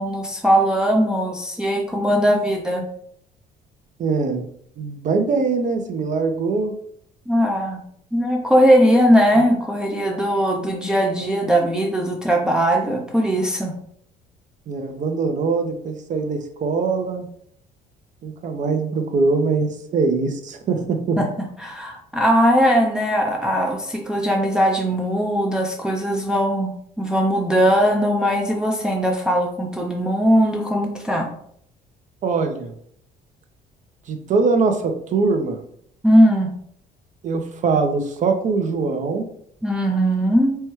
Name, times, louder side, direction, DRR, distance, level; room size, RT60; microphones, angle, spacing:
voice 1, 0.0-2.8 7.3-7.8 8.1-13.8 21.2-31.3 36.0-36.5 39.6-40.6, equal, 5° right, 0 dB, 0.5 m, -19 dB
voice 2, 4.0-4.4 4.8-6.7 14.7-17.3 18.2-21.2 32.2-32.7 34.1-35.6 37.2-39.3, right 4 dB, 45° right, 6 dB, 0.6 m, -22 dB
4.4 x 2.2 x 3.0 m, 0.66 s
cardioid pair, 110°, 17 cm